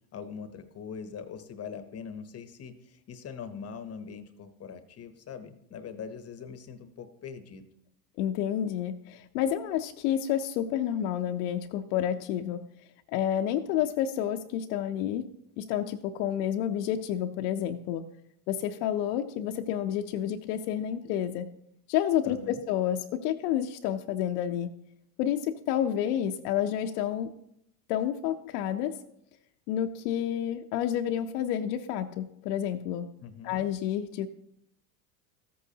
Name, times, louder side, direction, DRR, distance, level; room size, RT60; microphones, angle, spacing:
voice 1, 0.1-7.6 22.2-22.6 33.2-33.6, left 6 dB, 30° left, 9 dB, 0.8 m, -42 dB
voice 2, 8.2-12.6 13.1-15.3 15.6-18.0 18.5-21.5 21.9-24.7 25.2-27.3 27.9-28.9 29.7-33.1 33.4-34.3, left 10 dB, 70° left, 5 dB, 0.7 m, -29 dB
13.5 x 8.4 x 2.8 m, 0.77 s
supercardioid pair, 115°, 50 cm